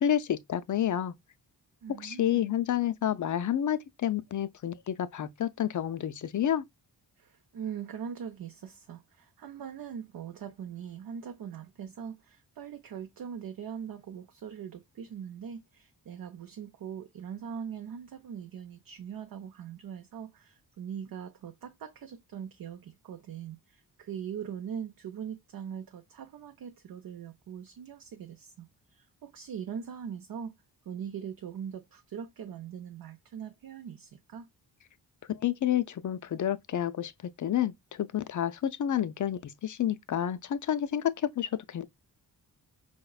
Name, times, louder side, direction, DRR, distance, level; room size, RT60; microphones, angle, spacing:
voice 1, 0.0-1.1 2.0-6.6 35.3-37.1 37.4-41.9, left 10 dB, 50° left, 0.5 m, -29 dB
voice 2, 1.8-2.5 7.2-30.5 30.9-34.5, right 8 dB, 60° right, 0.6 m, -41 dB
4.8 x 2.1 x 2.3 m
cardioid pair, 80°, 40 cm